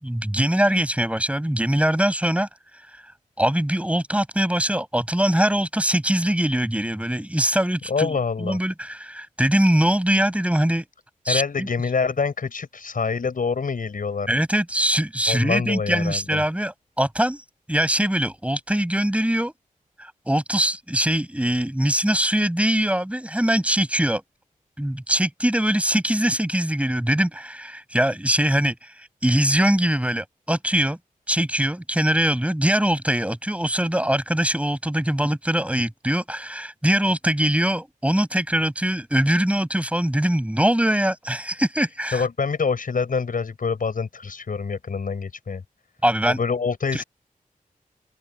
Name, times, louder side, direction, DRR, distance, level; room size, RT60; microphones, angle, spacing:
voice 1, 0.0-2.5 3.4-10.8 11.2-11.7 14.3-17.4 17.7-19.5 20.0-24.2 24.8-31.0 31.3-42.2 46.0-46.4 46.9-47.0, right 1 dB, 10° right, 7.6 m, -22 dB
voice 2, 7.9-8.6 11.3-14.3 15.3-16.4 42.1-45.6 46.2-47.0, left 5 dB, 75° left, 7.6 m, -26 dB
open air
cardioid pair, 65°, 14 cm